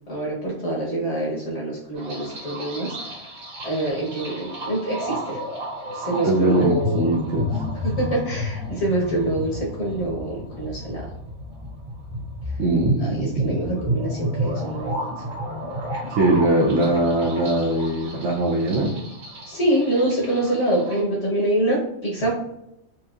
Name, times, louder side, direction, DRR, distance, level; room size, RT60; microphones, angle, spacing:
voice 1, 0.1-3.0 3.6-5.4 5.9-7.2 8.0-11.0 13.0-15.1 19.5-22.3, right 1 dB, 60° left, -4 dB, 1.3 m, -25 dB
sound 1, 2.0-21.0, equal, 85° right, 1.7 m, -31 dB
voice 2, 6.2-7.6 12.6-13.6 16.1-18.9, right 2 dB, 65° right, -4 dB, 0.9 m, -21 dB
4.5 x 2.6 x 2.4 m, 0.81 s
omnidirectional pair, 1.4 m